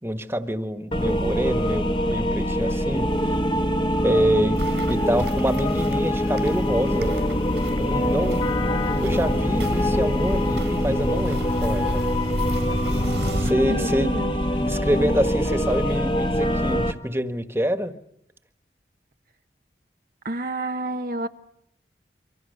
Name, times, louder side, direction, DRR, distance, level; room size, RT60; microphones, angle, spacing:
voice 1, 0.0-3.3 4.0-4.6 4.9-7.1 7.8-8.7 9.0-12.0 12.7-12.8 13.4-14.1 14.6-17.9, equal, 15° right, 9 dB, 1.6 m, -26 dB
sound 1, 0.9-16.9, left 1 dB, 25° left, 1.4 m, -24 dB
Walk footsteps, 4.5-13.5, right 1 dB, 90° right, 4.2 m, -31 dB
voice 2, 13.7-14.3 20.2-21.3, right 2 dB, 50° right, 6 dB, 1.0 m, -29 dB
28.5 x 25.0 x 6.8 m, 0.77 s
head